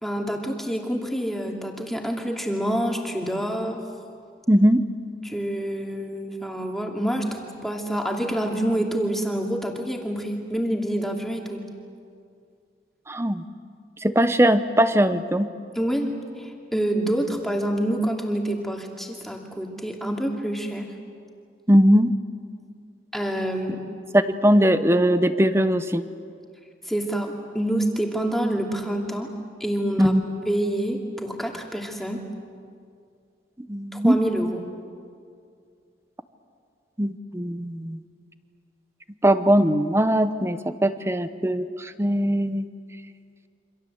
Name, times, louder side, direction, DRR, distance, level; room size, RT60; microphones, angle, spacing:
voice 1, 0.0-3.8 5.2-11.7 15.7-20.9 23.1-23.9 26.8-29.3 29.6-30.2 30.5-32.2 33.9-34.6, right 1 dB, ahead, 1 dB, 2.6 m, -27 dB
voice 2, 4.5-4.8 13.1-13.4 14.0-15.5 21.7-22.1 24.1-26.0 30.0-30.2 33.7-34.2 37.0-38.0 39.2-42.7, equal, 15° right, 11 dB, 0.9 m, -20 dB
28.0 x 25.5 x 8.0 m, 2.3 s
head